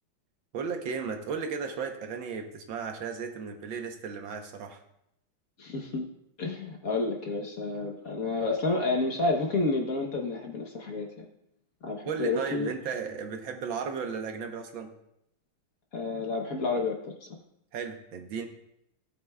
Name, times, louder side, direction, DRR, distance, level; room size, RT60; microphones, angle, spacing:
voice 1, 0.5-4.8 12.1-14.9 17.7-18.5, right 6 dB, 70° right, 5 dB, 1.7 m, -35 dB
voice 2, 5.6-6.1 6.4-11.3 11.8-12.7 15.9-17.3, left 3 dB, 50° left, 2 dB, 1.2 m, -30 dB
16.0 x 7.9 x 2.3 m, 0.78 s
omnidirectional pair, 2.2 m